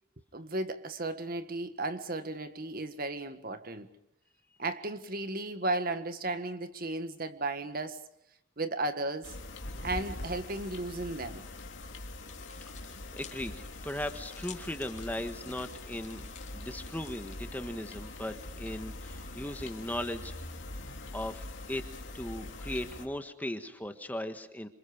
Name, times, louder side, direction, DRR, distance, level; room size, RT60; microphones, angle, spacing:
voice 1, 0.3-3.9 4.6-8.0 8.6-9.3 9.8-11.5, right 2 dB, 45° right, 1.7 m, -35 dB
sound 1, 9.2-23.1, left 2 dB, 65° left, 2.8 m, -43 dB
sound 2, 12.3-17.4, left 7 dB, 35° left, 3.6 m, -53 dB
voice 2, 12.8-16.2 16.5-20.4 21.1-21.8 22.1-24.7, left 1 dB, 10° left, 1.5 m, -38 dB
27.5 x 27.0 x 5.2 m
head